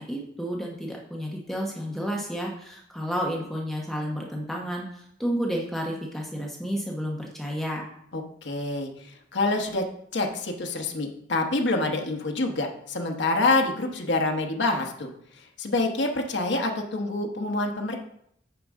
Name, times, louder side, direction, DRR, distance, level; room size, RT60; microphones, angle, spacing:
voice 1, 0.0-4.9 5.2-7.8, equal, ahead, -2 dB, 0.9 m, -31 dB
voice 2, 8.1-9.8 10.1-15.1 15.6-18.0, left 2 dB, 70° left, 2 dB, 1.0 m, -26 dB
9.3 x 5.2 x 3.6 m, 0.71 s
head